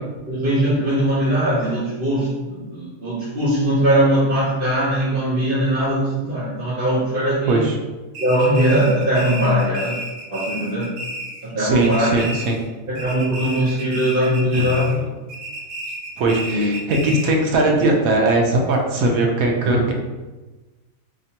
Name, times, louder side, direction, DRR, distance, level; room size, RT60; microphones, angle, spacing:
voice 1, 0.3-7.7 8.2-10.0 10.3-10.9 11.4-12.1 12.9-15.1 16.5-16.7, equal, 45° right, -10 dB, 1.0 m, -20 dB
sound 1, 8.1-11.5 11.8-12.7 13.0-15.0 15.3-17.4, right 1 dB, 60° right, 0.7 m, -32 dB
voice 2, 11.6-12.6 14.5-14.7 16.2-19.9, right 2 dB, 90° right, 0 dB, 1.1 m, -19 dB
3.3 x 2.9 x 2.8 m, 1.2 s
omnidirectional pair, 1.5 m